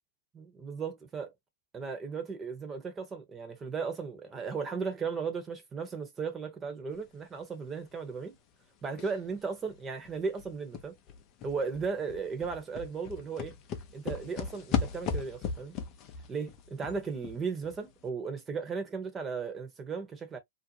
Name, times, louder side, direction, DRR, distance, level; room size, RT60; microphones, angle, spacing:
voice 1, 0.3-1.3 1.7-8.4 8.8-10.9 11.4-13.5 13.9-15.8 16.3-20.4, right 5 dB, 20° right, 1.0 m, -36 dB
sound 1, 9.0-9.3 9.7-9.8 10.1-17.8 18.1-18.2, left 6 dB, 35° left, 0.6 m, -37 dB
2.6 x 2.0 x 2.9 m
hypercardioid pair, 115°, 0 cm